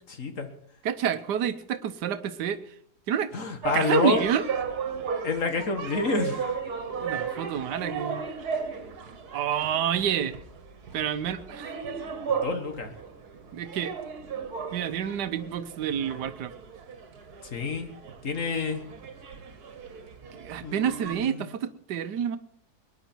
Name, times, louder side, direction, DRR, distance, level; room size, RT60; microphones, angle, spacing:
voice 1, 0.1-0.5 3.3-4.2 5.2-6.5 12.3-12.9 17.4-17.9 18.2-18.8 20.6-21.4, left 4 dB, 50° left, 7 dB, 1.8 m, -28 dB
voice 2, 0.8-2.8 3.1-3.3 3.7-4.5 6.9-8.3 9.3-10.4 10.9-11.8 13.5-13.9 14.7-16.5 20.4-22.4, right 9 dB, 85° right, 11 dB, 1.5 m, -28 dB
sound 1, 3.6-21.2, right 6 dB, 70° right, 1.9 m, -36 dB
22.5 x 10.5 x 4.5 m, 0.68 s
omnidirectional pair, 1.8 m